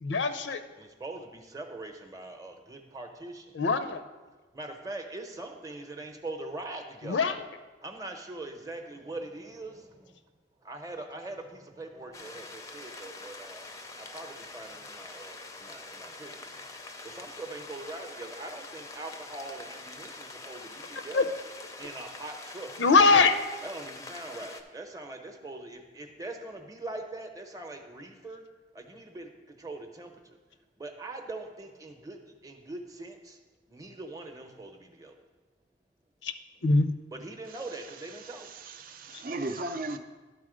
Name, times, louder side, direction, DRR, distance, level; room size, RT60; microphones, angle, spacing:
voice 1, 0.0-0.6 3.5-4.0 7.0-7.4 21.1-21.2 22.8-23.3 36.2-36.3 36.6-36.9 39.1-39.2, left 4 dB, 90° left, 9 dB, 0.6 m, -22 dB
voice 2, 0.8-3.6 4.5-7.3 7.8-10.2 10.6-13.7 14.0-16.7 17.0-21.4 21.8-22.7 23.6-28.5 28.7-30.4 30.8-33.4 33.7-35.2 37.1-39.3, right 2 dB, 20° right, 4 dB, 0.7 m, -42 dB
sound 1, 12.1-24.6, left 3 dB, 20° left, 0.5 m, -45 dB
voice 3, 37.5-40.0, right 2 dB, 50° right, 7 dB, 0.5 m, -38 dB
11.5 x 4.2 x 5.0 m, 1.2 s
head